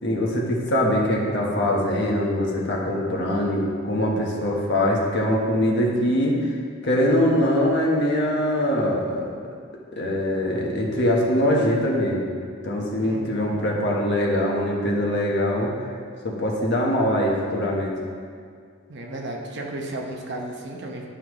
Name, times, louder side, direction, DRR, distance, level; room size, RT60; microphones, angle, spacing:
voice 1, 0.0-6.3 6.8-9.3 9.9-12.2 12.6-15.7 16.2-17.9, left 1 dB, 55° left, -2 dB, 1.2 m, -22 dB
voice 2, 13.0-13.6 18.9-21.1, right 1 dB, 55° right, 0 dB, 1.0 m, -34 dB
11.5 x 5.7 x 3.1 m, 2.1 s
head